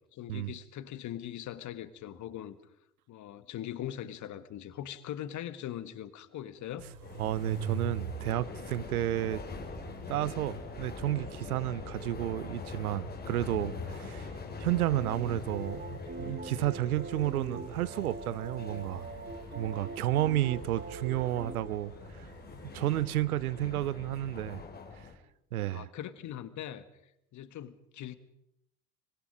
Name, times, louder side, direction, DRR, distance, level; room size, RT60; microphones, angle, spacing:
voice 1, 0.1-2.6 3.1-6.9 25.7-26.8 27.3-28.2, left 11 dB, 40° left, 1.7 m, -41 dB
sound 1, 6.8-23.1, right 7 dB, 45° right, 3.1 m, -47 dB
sound 2, 7.0-25.1, left 4 dB, 20° left, 4.0 m, -44 dB
voice 2, 7.2-9.4 10.1-14.3 14.6-19.1 19.6-22.3 22.6-24.6 25.5-25.9, right 14 dB, 70° right, 0.9 m, -31 dB
sound 3, 14.8-21.6, right 3 dB, 20° right, 2.5 m, -42 dB
25.0 x 24.5 x 5.1 m
figure-of-eight pair, 70°, 46 cm